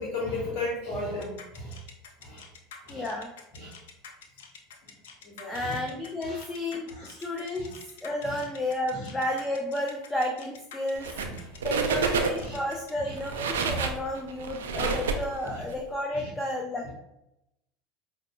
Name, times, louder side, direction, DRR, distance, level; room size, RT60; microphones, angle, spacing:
voice 1, 0.0-1.8 2.2-2.4 2.9-3.0 3.5-3.8 5.2-5.8 6.2-6.5 6.9-7.1 7.6-7.7 8.2-8.4 8.9-9.1 11.2-11.5 11.8-12.0 12.4-12.6 13.0-13.1 14.7-15.0 15.4-15.6 16.1-16.3, left 2 dB, 50° left, -4 dB, 0.9 m, -36 dB
sound 1, 1.2-12.9, left 6 dB, 75° left, 0.4 m, -48 dB
voice 2, 2.9-3.3 5.5-7.7 8.0-11.1 11.6-16.9, left 1 dB, 15° left, 0 dB, 0.5 m, -32 dB
sound 2, 11.0-11.4 11.6-12.6 13.1-15.8, right 4 dB, 80° right, 0.3 m, -28 dB
4.9 x 2.0 x 2.3 m, 0.85 s
hypercardioid pair, 80°, 0 cm